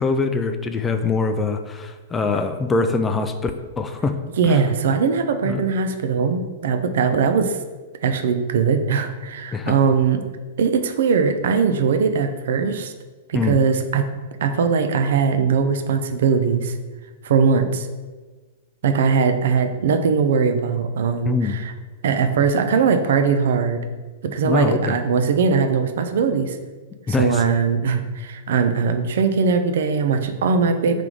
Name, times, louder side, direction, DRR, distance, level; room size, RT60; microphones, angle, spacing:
voice 1, 0.0-3.5 3.8-4.2 4.4-4.6 5.4-5.6 9.5-9.8 13.3-13.6 21.3-21.6 24.4-25.0 27.1-27.4, left 4 dB, 15° left, 7 dB, 0.3 m, -23 dB
voice 2, 4.4-7.6 8.0-10.2 10.6-12.9 13.3-14.0 14.4-16.7 17.2-17.9 18.8-21.7 22.0-23.8 24.2-26.6 27.1-31.0, right 5 dB, 65° right, 8 dB, 0.4 m, -20 dB
3.4 x 3.2 x 3.8 m, 1.3 s
hypercardioid pair, 105°, 0 cm